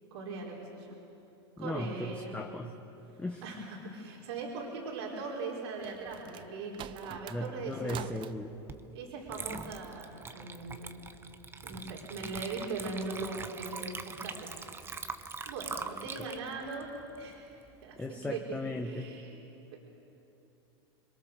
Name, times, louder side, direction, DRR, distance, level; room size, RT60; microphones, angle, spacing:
voice 1, 0.1-0.9 1.6-2.4 3.4-8.2 8.9-11.0 11.6-14.5 15.5-16.9 17.2-18.4 18.8-19.3 19.7-19.8, right 3 dB, 75° right, -2 dB, 4.6 m, -40 dB
voice 2, 1.6-2.7 3.2-3.4 7.3-8.5 16.2-16.3 18.0-19.1, left 1 dB, 10° left, 1 dB, 1.3 m, -37 dB
sound 1, 5.4-8.3, right 12 dB, 35° right, 0.6 m, -46 dB
Water / Liquid, 8.7-8.8 9.3-17.8, right 5 dB, 15° right, 1.0 m, -43 dB
27.0 x 22.0 x 6.7 m, 2.9 s
supercardioid pair, 125°, 14 cm